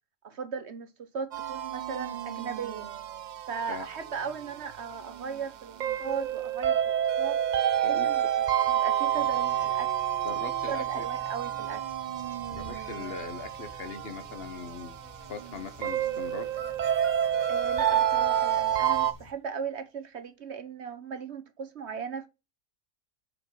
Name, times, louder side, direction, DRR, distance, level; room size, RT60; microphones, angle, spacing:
voice 1, 0.2-2.9 3.5-7.4 7.8-9.9 10.7-11.8 17.5-22.3, right 6 dB, 55° right, 1.2 m, -37 dB
sound 1, 1.3-19.1, right 10 dB, 80° right, 0.4 m, -29 dB
sound 2, 9.1-19.3, equal, 25° left, 2.0 m, -51 dB
voice 2, 10.2-11.0 12.5-16.5, left 4 dB, 50° left, 1.2 m, -40 dB
sound 3, 16.5-18.6, right 4 dB, 35° right, 1.0 m, -38 dB
6.5 x 5.3 x 5.6 m
omnidirectional pair, 1.4 m